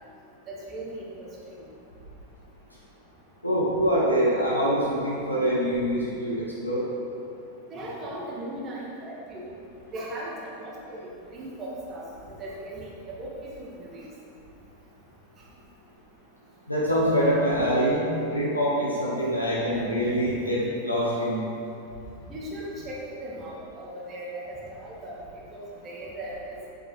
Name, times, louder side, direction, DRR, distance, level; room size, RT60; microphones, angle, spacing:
voice 1, 0.5-1.1 1.5-1.6 7.7-9.5 9.9-11.0 11.3-12.1 12.4-14.0 22.3-25.1 25.5-26.6, right 1 dB, 30° right, -5 dB, 1.7 m, -38 dB
voice 2, 3.4-6.8 16.7-21.4, equal, 85° left, -6 dB, 1.4 m, -25 dB
8.0 x 7.6 x 3.3 m, 2.6 s
figure-of-eight pair, 90°, 0 cm